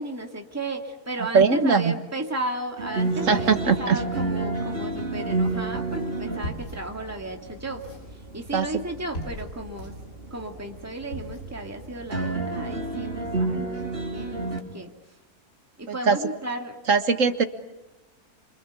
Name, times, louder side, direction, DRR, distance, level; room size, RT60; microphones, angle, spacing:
voice 1, 0.0-7.8 8.1-9.9 10.3-15.2 15.8-16.8, right 1 dB, 10° right, 2 dB, 2.3 m, -34 dB
voice 2, 1.3-1.9 3.3-4.0 8.5-8.7 16.1-16.2 16.9-17.4, right 5 dB, 55° right, 9 dB, 1.8 m, -20 dB
sound 1, 2.8-14.6, right 2 dB, 35° right, 3.5 m, -31 dB
sound 2, 5.2-12.2, equal, 75° left, 7.9 m, -42 dB
28.0 x 26.0 x 8.3 m, 0.99 s
omnidirectional pair, 1.6 m